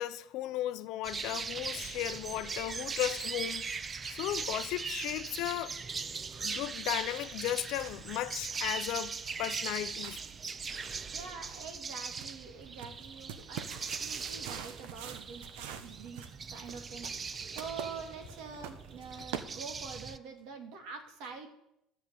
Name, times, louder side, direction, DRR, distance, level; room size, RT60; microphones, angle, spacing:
voice 1, 0.0-5.8 6.4-10.2, left 14 dB, 55° left, 0.6 m, -36 dB
sound 1, 1.0-20.2, right 5 dB, 20° right, 0.4 m, -40 dB
sound 2, 5.9-20.1, right 8 dB, 85° right, 1.1 m, -48 dB
voice 2, 11.1-17.1 17.5-21.5, right 5 dB, 60° right, 2.4 m, -45 dB
13.0 x 5.7 x 8.4 m
cardioid pair, 170°, 0 cm